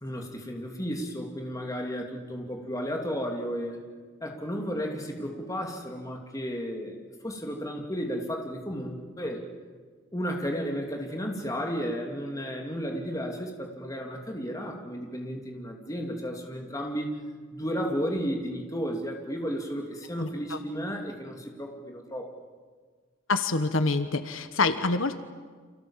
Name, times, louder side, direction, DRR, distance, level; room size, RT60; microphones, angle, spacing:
voice 1, 0.0-3.8 4.2-7.0 7.2-9.4 10.1-17.1 17.5-22.3, equal, 15° left, 2 dB, 3.1 m, -33 dB
voice 2, 20.2-20.6 23.3-25.2, left 3 dB, 80° left, 10 dB, 1.3 m, -26 dB
29.0 x 27.0 x 7.4 m, 1.5 s
head